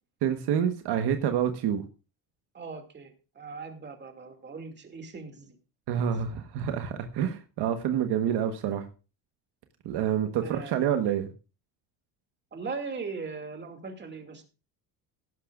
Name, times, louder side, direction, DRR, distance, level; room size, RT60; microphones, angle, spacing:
voice 1, 0.2-1.8 5.9-8.8 9.8-11.3, right 9 dB, 65° right, 6 dB, 1.4 m, -27 dB
voice 2, 2.5-5.6 10.4-10.8 12.5-14.4, right 4 dB, 25° right, 4 dB, 2.5 m, -39 dB
16.0 x 12.0 x 2.5 m, 0.33 s
cardioid pair, 135°, 43 cm